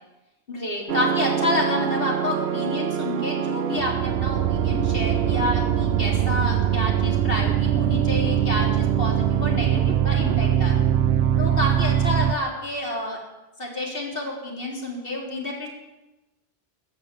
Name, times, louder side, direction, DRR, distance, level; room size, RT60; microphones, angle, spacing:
voice 1, 0.5-10.8 11.4-13.2 13.6-15.7, left 1 dB, 60° left, -1 dB, 3.9 m, -29 dB
sound 1, 0.9-12.3, right 10 dB, 75° right, 1.0 m, -22 dB
16.0 x 9.3 x 8.3 m, 1.0 s
omnidirectional pair, 1.1 m